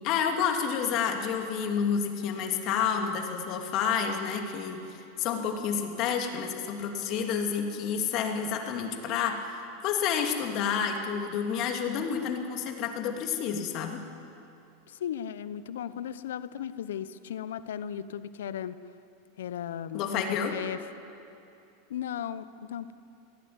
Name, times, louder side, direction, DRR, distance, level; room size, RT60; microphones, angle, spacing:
voice 1, 0.0-9.5 9.8-14.0 19.9-20.6, left 7 dB, 50° left, 3 dB, 2.8 m, -29 dB
voice 2, 14.9-18.8 19.4-20.8 21.9-22.9, left 9 dB, 85° left, 14 dB, 0.9 m, -36 dB
22.0 x 17.0 x 9.6 m, 2.7 s
hypercardioid pair, 115°, 0 cm